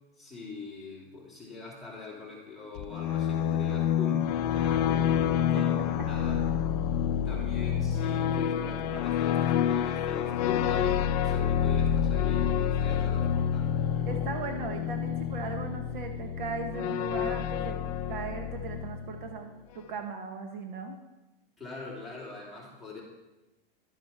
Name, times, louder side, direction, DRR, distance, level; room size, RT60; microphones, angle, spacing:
voice 1, 0.2-6.4 7.2-14.2 21.6-23.0, left 4 dB, ahead, -6 dB, 2.7 m, -43 dB
sound 1, 2.8-19.4, left 9 dB, 40° left, 0.5 m, -28 dB
voice 2, 14.0-17.8 18.1-21.0, right 4 dB, 55° right, 5 dB, 1.2 m, -38 dB
12.0 x 8.1 x 4.3 m, 1.0 s
supercardioid pair, 165°, 30 cm